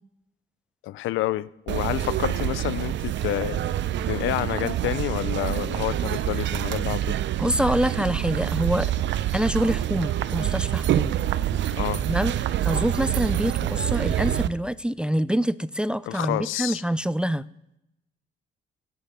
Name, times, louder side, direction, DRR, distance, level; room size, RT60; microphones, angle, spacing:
voice 1, 0.8-3.7 4.1-7.2 11.7-12.0 16.1-16.8, left 15 dB, 80° left, 18 dB, 0.5 m, -29 dB
sound 1, 1.7-14.5, right 12 dB, 65° right, 0.5 m, -26 dB
voice 2, 7.4-8.9 9.3-11.2 12.1-12.3 12.6-17.4, equal, 5° right, 16 dB, 0.3 m, -25 dB
17.0 x 11.0 x 3.7 m, 0.87 s
cardioid pair, 90°, 20 cm